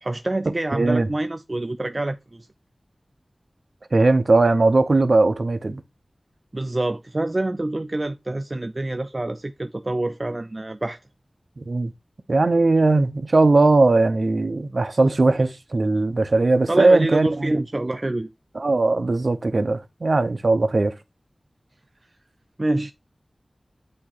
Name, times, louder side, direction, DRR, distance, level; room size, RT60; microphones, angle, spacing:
voice 1, 0.0-2.5 6.5-11.0 16.7-18.3 22.6-22.9, right 2 dB, 40° right, 0.4 m, -26 dB
voice 2, 0.7-1.1 3.9-5.8 11.6-11.9 12.3-17.6 18.5-20.9, right 3 dB, 65° right, 0.8 m, -19 dB
8.7 x 2.9 x 4.1 m
wide cardioid pair, 60°, 0 cm